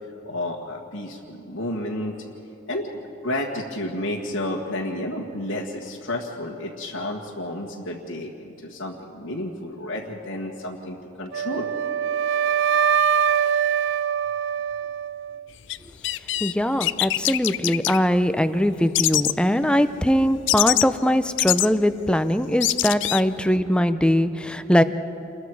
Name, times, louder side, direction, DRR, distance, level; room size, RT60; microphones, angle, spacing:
voice 1, 0.2-2.2 2.7-11.7 23.5-23.6, left 1 dB, 85° left, -4 dB, 1.7 m, -31 dB
Wind instrument woodwind instrument, 11.3-15.4, right 8 dB, 65° right, 0.4 m, -23 dB
sound 1, 15.7-15.8 16.0-16.5 16.8-18.0 18.9-19.3 20.5-20.8 21.4-21.7 22.3-22.4 22.6-23.2, left 15 dB, 60° left, 0.4 m, -23 dB
voice 2, 16.4-24.8, equal, 5° left, 10 dB, 0.6 m, -21 dB
29.0 x 21.5 x 4.8 m, 2.9 s
head